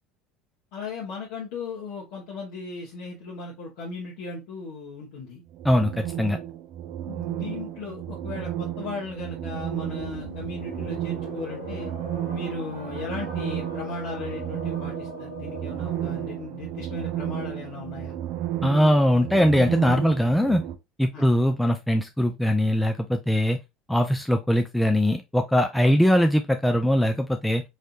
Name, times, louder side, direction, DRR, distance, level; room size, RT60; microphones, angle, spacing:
voice 1, 0.7-5.4 7.0-11.9 12.3-18.2 21.1-21.3 25.8-26.0, left 4 dB, 65° left, 1.3 m, -37 dB
sound 1, 5.5-20.8, right 12 dB, 55° right, 0.5 m, -33 dB
voice 2, 5.6-6.4 18.6-20.6 21.0-23.6 23.9-27.6, equal, 5° left, 0.5 m, -21 dB
sound 2, 10.0-16.4, equal, 90° left, 1.5 m, -39 dB
4.2 x 3.2 x 2.5 m
figure-of-eight pair, 65°, 0 cm